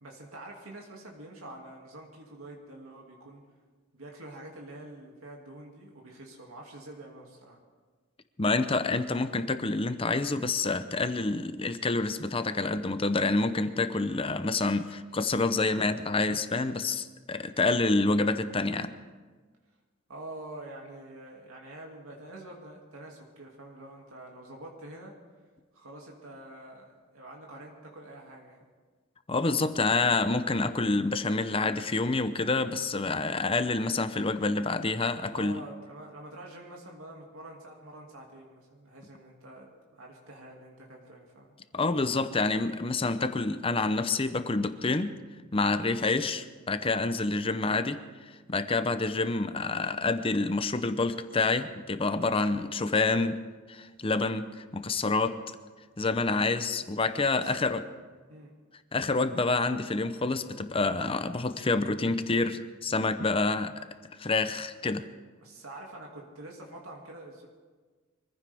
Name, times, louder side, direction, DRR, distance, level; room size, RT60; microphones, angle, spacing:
voice 1, 0.0-3.4 3.9-7.6 20.1-25.2 25.7-28.7 35.3-41.6 57.3-57.6 58.3-58.5 65.4-67.5, right 1 dB, 85° right, -1 dB, 2.4 m, -46 dB
voice 2, 8.4-18.9 29.3-35.6 41.7-45.2 45.5-48.0 48.5-53.4 53.7-55.4 56.0-57.8 58.9-63.7 64.2-65.0, left 3 dB, 25° left, 11 dB, 0.7 m, -28 dB
24.0 x 15.0 x 3.5 m, 1.4 s
head